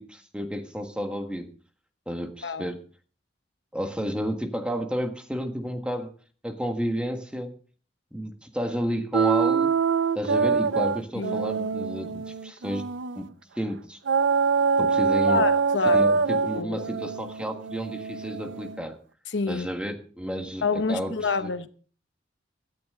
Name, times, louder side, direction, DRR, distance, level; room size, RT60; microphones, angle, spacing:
voice 1, 0.0-1.5 2.0-2.8 3.7-6.1 6.4-7.5 8.1-9.7 10.1-12.8 13.2-13.3 13.6-14.0 14.8-15.4 15.8-19.0 19.5-20.6 20.9-21.5, equal, 5° right, 1.5 m, -31 dB
voice 2, 2.4-2.7 11.1-11.4 15.3-16.1 16.5-16.8 19.3-19.7 20.6-21.7, left 4 dB, 85° left, 0.9 m, -27 dB
sound 1, 9.1-13.3 14.1-18.8, right 5 dB, 90° right, 0.6 m, -24 dB
16.0 x 13.0 x 3.8 m
head